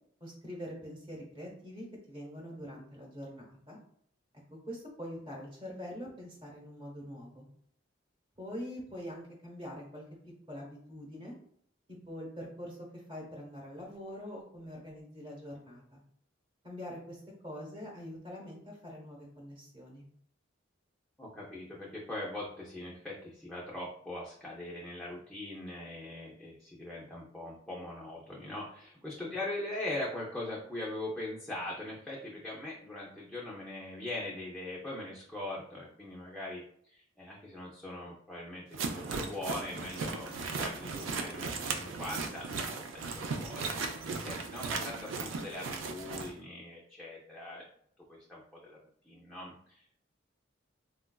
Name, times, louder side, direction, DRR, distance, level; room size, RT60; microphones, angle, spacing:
voice 1, 0.2-3.8 4.7-7.5 8.4-10.0 10.5-11.3 11.9-16.0 16.6-20.0 29.2-29.3, equal, 25° right, -2 dB, 0.9 m, -44 dB
voice 2, 21.2-47.7 48.1-48.8 49.0-50.0, left 1 dB, ahead, -5 dB, 0.4 m, -41 dB
sound 1, 38.7-46.3, right 4 dB, 85° right, 0.4 m, -37 dB
3.8 x 2.3 x 2.2 m, 0.66 s
head